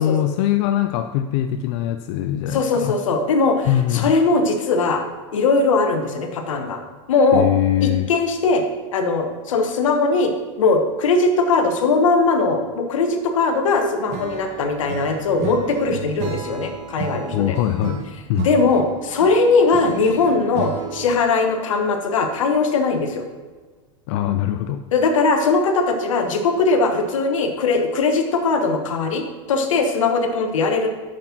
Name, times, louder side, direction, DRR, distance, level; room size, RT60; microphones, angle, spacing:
voice 1, 0.0-2.9 3.7-4.1 7.3-8.1 17.3-18.0 18.3-18.5 24.1-24.8, left 12 dB, 60° left, 8 dB, 0.5 m, -22 dB
voice 2, 2.5-5.0 5.3-6.8 7.1-7.5 7.8-8.6 8.9-17.6 18.4-23.2 24.9-30.9, left 3 dB, 80° left, 6 dB, 1.2 m, -20 dB
Acoustic guitar / Strum, 14.1-21.3, right 7 dB, 45° right, 1.2 m, -33 dB
6.4 x 6.2 x 5.9 m, 1.4 s
hypercardioid pair, 105°, 16 cm